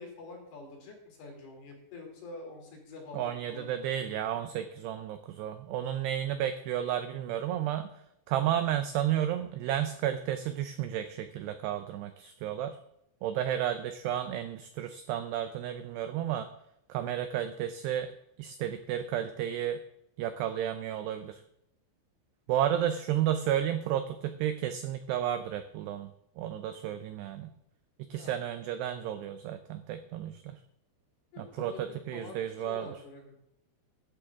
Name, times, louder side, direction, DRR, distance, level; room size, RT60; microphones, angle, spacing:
voice 1, 0.0-3.7 28.1-28.3 31.3-31.8 32.1-33.4, left 3 dB, 55° left, 1 dB, 4.8 m, -46 dB
voice 2, 3.1-7.9 8.3-12.8 13.2-16.5 16.9-18.1 18.4-19.8 20.2-21.4 22.5-26.1 26.4-27.5 28.0-30.6 31.4-32.9, right 10 dB, 85° right, 9 dB, 2.4 m, -32 dB
16.5 x 11.5 x 3.6 m, 0.79 s
omnidirectional pair, 5.6 m